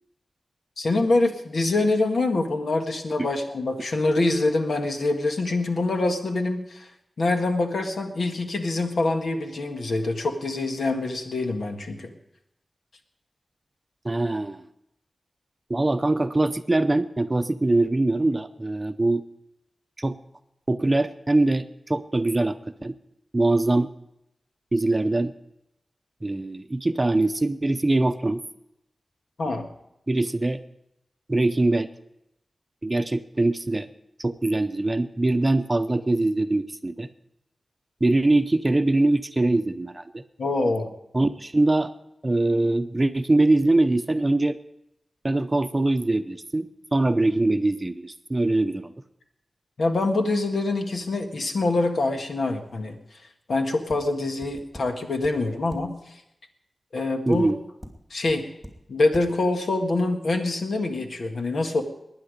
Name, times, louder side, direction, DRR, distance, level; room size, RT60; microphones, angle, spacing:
voice 1, 0.8-6.9 7.2-12.1 29.4-29.7 40.4-40.9 49.8-53.0 53.5-55.9 56.9-57.5 58.1-58.5 58.9-61.8, left 2 dB, 80° left, 4 dB, 1.7 m, -25 dB
voice 2, 14.0-14.7 15.7-19.2 20.0-20.2 20.7-22.9 23.3-23.9 24.7-25.3 26.2-28.4 29.5-29.6 30.1-30.6 31.3-31.9 32.8-33.9 34.2-37.1 38.0-40.2 41.1-41.9 42.2-44.6 45.2-48.9 57.3-57.6, right 2 dB, 25° right, 9 dB, 0.6 m, -23 dB
sound 1, 53.9-54.0 54.4-54.8 55.2-55.3 55.7-55.8 57.3-57.4 57.8-57.9 58.3-58.4 58.6-58.7 59.1-59.2, equal, 10° left, 2.6 m, -41 dB
20.5 x 9.8 x 5.1 m, 0.83 s
wide cardioid pair, 85°, 0 cm